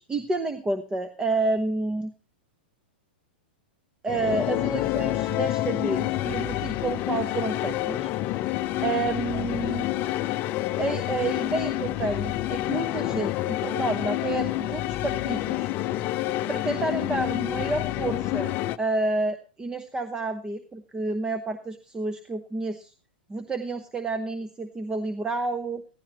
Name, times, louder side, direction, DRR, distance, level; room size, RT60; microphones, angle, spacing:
voice 1, 0.0-2.1 4.0-8.1 8.8-9.9 10.8-15.7 16.5-22.9 23.3-25.8, right 3 dB, 15° right, 10 dB, 0.9 m, -30 dB
sound 1, 4.1-18.8, left 15 dB, 35° left, 0.7 m, -28 dB
15.5 x 14.5 x 3.0 m, 0.34 s
hypercardioid pair, 120°, 6 cm